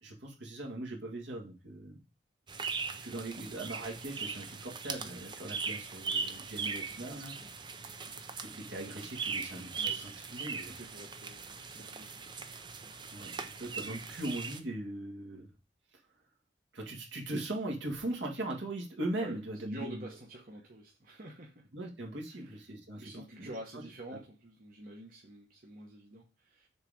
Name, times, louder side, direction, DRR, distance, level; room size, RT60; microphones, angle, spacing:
voice 1, 0.0-2.0 2.9-7.4 8.4-10.7 13.1-15.5 16.7-20.1 21.7-23.8, right 1 dB, 70° right, 1.7 m, -40 dB
sound 1, 2.5-14.6, right 5 dB, 25° right, 0.5 m, -40 dB
voice 2, 9.7-12.4 19.2-19.4 19.7-21.6 22.3-22.5 23.0-26.7, right 1 dB, 45° right, 1.0 m, -48 dB
6.5 x 3.5 x 4.9 m
head